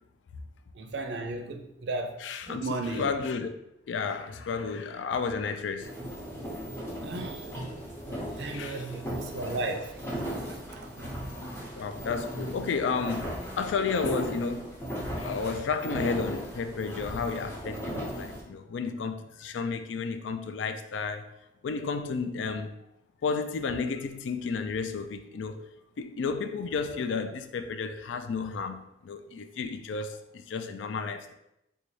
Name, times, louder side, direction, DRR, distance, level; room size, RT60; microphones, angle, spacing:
voice 1, 0.8-2.2 2.5-3.1 7.0-7.4 8.4-9.9 10.3-10.4 10.7-10.8, right 2 dB, 70° right, 0.4 m, -34 dB
voice 2, 2.2-3.5 3.9-5.9 8.5-9.0 11.8-14.7 15.2-21.3 21.6-22.8 23.2-31.3, left 5 dB, 90° left, 0.3 m, -32 dB
sound 1, 5.8-18.4, equal, 15° left, 0.6 m, -37 dB
3.9 x 2.3 x 3.1 m
head